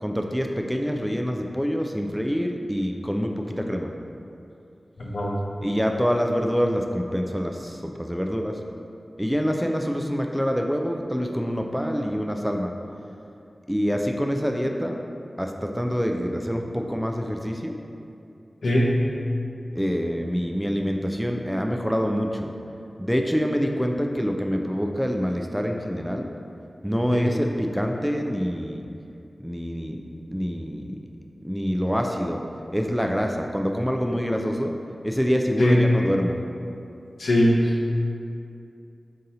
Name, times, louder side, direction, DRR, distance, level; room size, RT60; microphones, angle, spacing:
voice 1, 0.0-3.9 5.6-8.6 9.2-12.7 13.7-15.0 15.4-17.8 19.8-22.5 23.0-26.3 26.8-28.9 29.4-30.0 30.3-31.1 31.4-32.4 32.7-34.7 35.0-36.4, equal, ahead, 2 dB, 0.3 m, -26 dB
voice 2, 5.0-5.3 18.6-18.9 27.1-27.3 35.6-35.8 37.2-37.7, equal, 80° left, -3 dB, 0.6 m, -20 dB
4.0 x 2.7 x 3.9 m, 2.6 s
cardioid pair, 50°, 0 cm